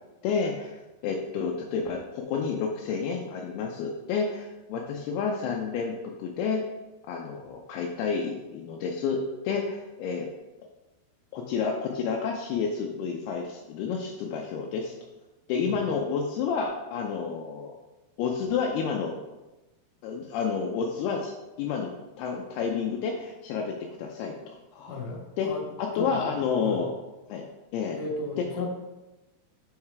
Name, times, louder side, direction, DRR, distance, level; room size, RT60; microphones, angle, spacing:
voice 1, 0.2-0.7 1.0-5.9 6.2-6.6 7.1-10.3 11.3-14.9 15.5-17.7 18.2-19.2 20.0-21.3 21.6-21.9 22.2-25.0 25.4-25.5 25.8-26.9 27.3-27.4 27.7-28.0, left 5 dB, 80° left, 1 dB, 2.6 m, -30 dB
voice 2, 24.9-25.7 26.0-26.2 26.6-26.8 28.0-28.7, left 3 dB, 60° left, -4 dB, 2.8 m, -35 dB
6.4 x 4.9 x 4.7 m, 1.1 s
omnidirectional pair, 4.6 m